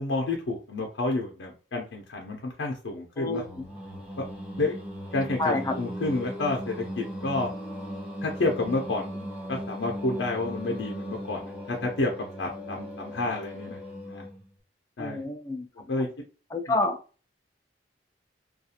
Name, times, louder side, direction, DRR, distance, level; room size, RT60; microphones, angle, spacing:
voice 1, 0.0-3.4 4.6-4.7 5.1-7.5 8.2-9.1 9.5-12.1 12.4-13.8 14.1-14.2 15.0-15.2 15.9-16.1, left 2 dB, 75° left, 0 dB, 0.5 m, -29 dB
voice 2, 3.2-3.6 5.4-5.8 15.0-15.7 16.5-17.0, left 2 dB, 15° left, 5 dB, 0.3 m, -28 dB
Singing, 3.3-14.5, equal, 5° right, 0.8 m, -38 dB
2.4 x 2.3 x 2.7 m, 0.36 s
head